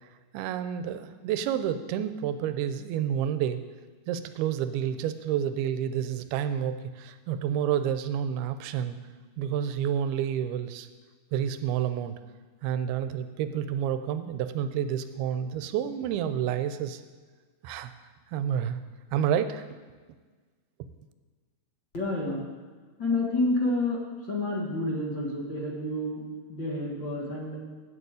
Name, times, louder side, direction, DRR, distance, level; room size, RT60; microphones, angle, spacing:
voice 1, 0.3-3.6 4.1-9.0 9.4-10.9 11.3-12.2 12.6-17.0 17.6-17.9 18.3-18.8 19.1-19.6, right 9 dB, 85° right, 11 dB, 2.6 m, -29 dB
voice 2, 21.9-22.4 23.0-24.0 24.3-26.2 26.5-27.6, left 2 dB, 45° left, -3 dB, 1.5 m, -29 dB
8.0 x 7.5 x 8.2 m, 1.4 s
omnidirectional pair, 4.4 m